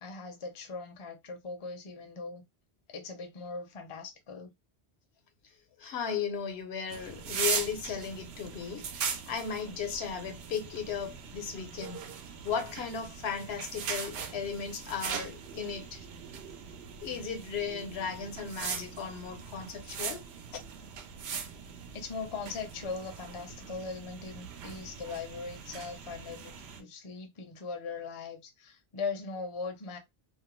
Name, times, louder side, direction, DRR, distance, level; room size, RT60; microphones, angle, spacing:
voice 1, 0.0-2.4 2.9-4.5 21.9-30.0, left 4 dB, 40° left, 0.5 m, -40 dB
voice 2, 5.8-8.9 9.3-12.1 12.4-16.1 16.7-20.3, left 7 dB, 80° left, 0.9 m, -36 dB
sound 1, 6.9-26.8, right 6 dB, 80° right, 0.8 m, -40 dB
2.4 x 2.0 x 3.0 m
omnidirectional pair, 1.1 m